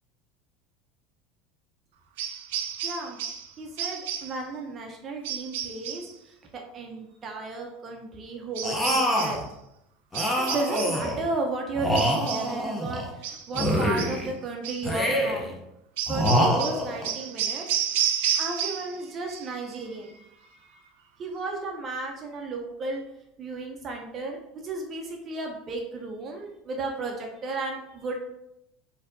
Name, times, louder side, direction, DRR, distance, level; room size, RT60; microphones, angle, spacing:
sound 1, 2.2-3.5 3.8-4.4 5.2-6.1 8.5-9.4 10.1-11.1 11.9-12.6 13.2-14.2 14.6-14.9 16.0-19.0 19.3-19.8, right 9 dB, 90° right, 0.4 m, -31 dB
voice 1, 2.8-3.2 3.6-9.4 10.4-15.5 16.1-17.7 18.3-20.9 21.2-23.0 23.4-28.2, right 3 dB, 30° right, 2 dB, 0.5 m, -34 dB
sound 2, 8.6-9.4 10.1-11.2 11.7-13.1 13.5-14.3 14.8-15.5 16.1-17.1, equal, 10° left, 0.6 m, -25 dB
4.1 x 2.7 x 2.6 m, 0.83 s
supercardioid pair, 145°, 0 cm